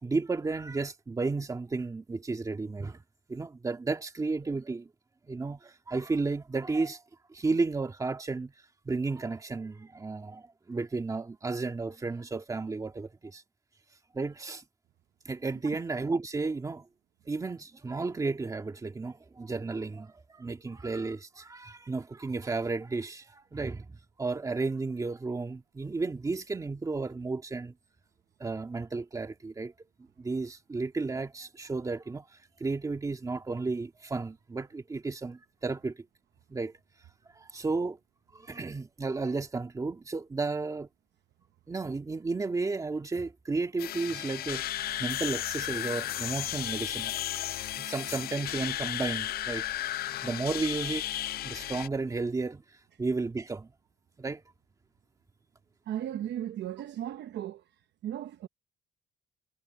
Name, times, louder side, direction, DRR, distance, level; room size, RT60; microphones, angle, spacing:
voice 1, 0.0-3.0 3.3-4.9 5.3-7.0 7.3-8.5 8.9-13.4 14.1-14.6 15.3-16.9 17.3-27.7 28.4-29.7 30.2-32.3 32.6-36.0 36.5-36.7 37.4-38.0 38.3-40.9 41.7-47.1 47.8-49.7 50.2-51.1 51.4-52.6 53.0-53.7 54.2-54.4, right 3 dB, 15° right, 2.0 m, -33 dB
sound 1, 43.8-51.9, left 13 dB, 50° left, 0.4 m, -34 dB
voice 2, 55.9-57.6 58.0-58.5, right 11 dB, 60° right, 0.9 m, -36 dB
cardioid pair, 160°, 20 cm